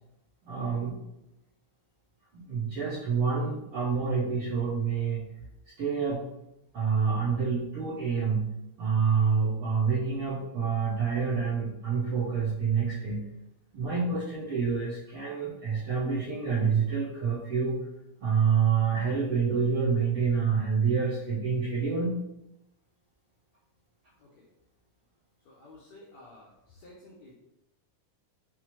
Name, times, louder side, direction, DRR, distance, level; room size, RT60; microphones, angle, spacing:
voice 1, 0.4-0.9 2.3-5.3 5.8-6.2 6.7-8.5 8.8-13.2 13.7-17.8 18.2-22.2, right 6 dB, 70° right, -10 dB, 1.4 m, -27 dB
voice 2, 25.4-27.3, left 2 dB, 85° left, -3 dB, 1.5 m, -52 dB
6.0 x 2.1 x 2.9 m, 0.86 s
omnidirectional pair, 3.7 m